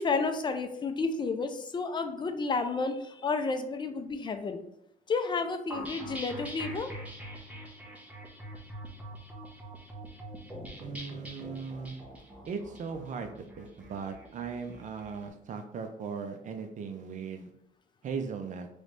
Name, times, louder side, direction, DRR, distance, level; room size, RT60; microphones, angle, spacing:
voice 1, 0.0-4.6 5.1-6.9, left 4 dB, 25° left, 7 dB, 0.5 m, -31 dB
sound 1, 5.7-15.2, right 1 dB, 10° right, 0.9 m, -44 dB
voice 2, 10.8-12.0 12.5-17.5 18.0-18.7, right 5 dB, 45° right, 6 dB, 0.6 m, -38 dB
3.2 x 3.1 x 4.0 m, 0.75 s
cardioid pair, 110°, 17 cm